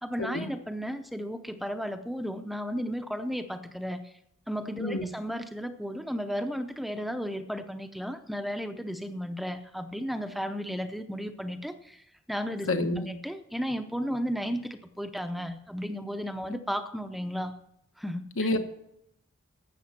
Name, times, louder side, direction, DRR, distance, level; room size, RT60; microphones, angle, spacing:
voice 1, 0.0-4.1 4.5-17.6 18.0-18.5, equal, ahead, 8 dB, 0.6 m, -34 dB
voice 2, 12.7-13.0 18.4-18.6, left 2 dB, 70° left, 7 dB, 1.2 m, -28 dB
12.5 x 8.4 x 6.0 m, 0.77 s
head